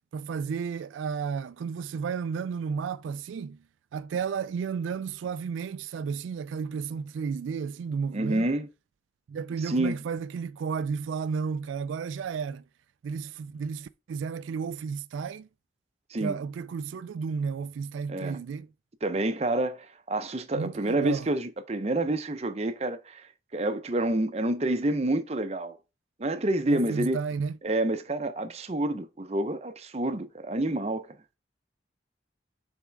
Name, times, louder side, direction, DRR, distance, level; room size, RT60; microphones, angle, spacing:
voice 1, 0.1-3.6 3.9-8.5 9.3-12.6 13.0-15.5 16.2-18.7 20.5-21.3 26.7-27.6, right 6 dB, 90° right, 0.3 m, -32 dB
voice 2, 8.1-8.7 9.6-10.0 16.1-16.4 18.1-18.4 19.0-25.8 26.2-27.2 27.6-31.2, right 1 dB, 35° right, 0.6 m, -28 dB
7.1 x 3.6 x 4.5 m
head